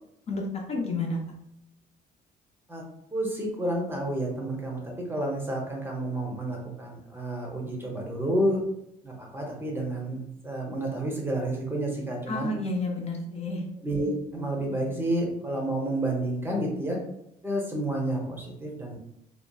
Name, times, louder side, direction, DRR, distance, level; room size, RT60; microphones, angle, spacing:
voice 1, 0.7-1.2 12.3-13.6, left 2 dB, 40° left, 0 dB, 0.5 m, -30 dB
voice 2, 3.1-8.6 9.0-12.5 13.8-17.0 17.4-18.9, right 1 dB, 15° right, -1 dB, 0.7 m, -30 dB
2.8 x 2.3 x 2.2 m, 0.78 s
cardioid pair, 110°, 17 cm